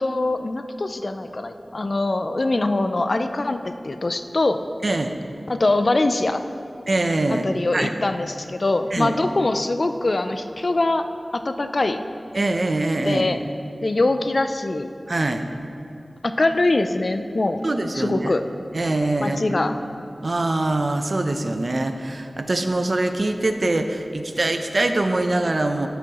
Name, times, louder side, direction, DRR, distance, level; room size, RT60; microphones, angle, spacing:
voice 1, 0.0-4.6 5.5-6.4 7.3-12.0 13.0-13.4 13.8-14.9 16.2-17.6 18.0-18.5 19.2-19.8, left 2 dB, 60° left, 8 dB, 0.4 m, -23 dB
voice 2, 4.8-5.2 6.9-7.5 7.7-7.9 8.9-9.2 12.3-13.3 15.1-15.4 17.6-18.3 18.7-19.4 20.2-25.9, right 2 dB, 60° right, 7 dB, 0.5 m, -23 dB
11.0 x 8.0 x 2.9 m, 2.6 s
wide cardioid pair, 65°, 0 cm